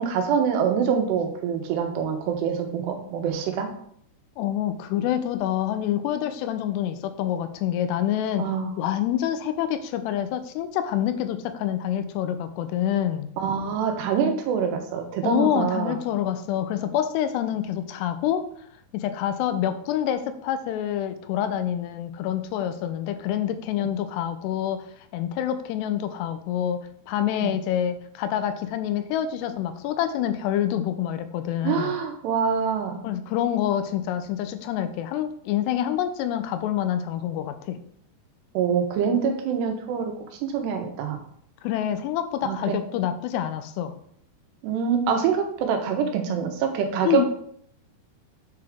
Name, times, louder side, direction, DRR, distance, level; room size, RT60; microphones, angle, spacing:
voice 1, 0.1-3.7 8.4-8.7 13.4-16.0 23.8-23.9 27.4-27.5 31.6-33.0 38.5-40.1 40.4-41.2 42.4-42.8 44.6-47.3, right 7 dB, 85° right, 4 dB, 3.1 m, -25 dB
voice 2, 4.4-8.5 8.8-13.3 15.2-18.5 18.9-24.9 25.1-31.9 33.0-37.8 41.6-43.9 47.0-47.3, left 10 dB, 90° left, 10 dB, 2.7 m, -27 dB
8.1 x 4.7 x 3.6 m, 0.65 s
omnidirectional pair, 4.8 m